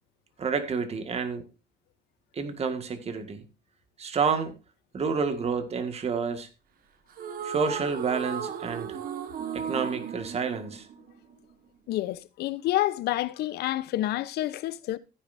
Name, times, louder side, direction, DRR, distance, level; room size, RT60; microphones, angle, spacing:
voice 1, 0.4-1.5 2.3-3.4 4.0-4.5 4.9-6.5 7.4-9.0 9.5-10.9, right 5 dB, 40° right, 1.9 m, -29 dB
sound 1, 7.1-11.5, right 7 dB, 60° right, 1.4 m, -35 dB
voice 2, 11.9-15.0, left 15 dB, 75° left, 0.8 m, -28 dB
15.0 x 9.7 x 2.7 m
cardioid pair, 110°, 17 cm